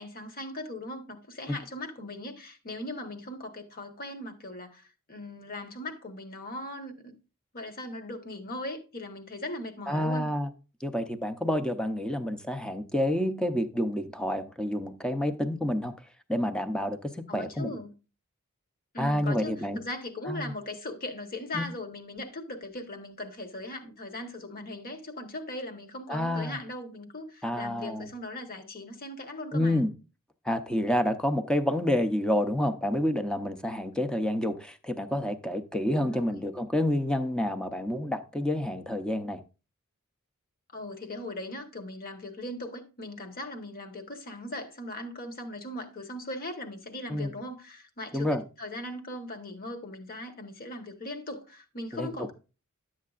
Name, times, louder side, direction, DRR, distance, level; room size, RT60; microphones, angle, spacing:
voice 1, 0.0-7.1 7.5-10.3 17.3-17.9 18.9-29.8 36.0-36.4 40.7-52.3, left 1 dB, 45° left, 1.2 m, -39 dB
voice 2, 9.9-10.5 10.8-16.0 16.3-17.7 19.0-19.8 20.3-20.5 21.5-21.7 26.1-26.6 27.4-28.1 29.5-29.9 30.4-39.4 47.1-47.3 48.1-48.4 51.9-52.1, left 1 dB, 5° left, 0.6 m, -28 dB
11.0 x 7.5 x 2.4 m
head